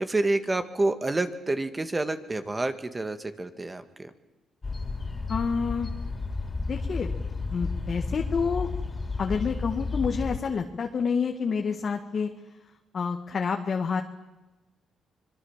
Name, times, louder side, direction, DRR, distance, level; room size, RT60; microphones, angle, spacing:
voice 1, 0.0-4.1, right 2 dB, 20° right, 9 dB, 1.9 m, -28 dB
sound 1, 4.6-10.4, left 3 dB, 30° left, 3.7 m, -32 dB
voice 2, 5.3-5.9 6.7-7.1 7.5-8.7 9.2-12.3 12.9-14.0, left 5 dB, 45° left, 3 dB, 1.7 m, -28 dB
25.0 x 22.5 x 7.4 m, 1.1 s
cardioid pair, 90°, 0 cm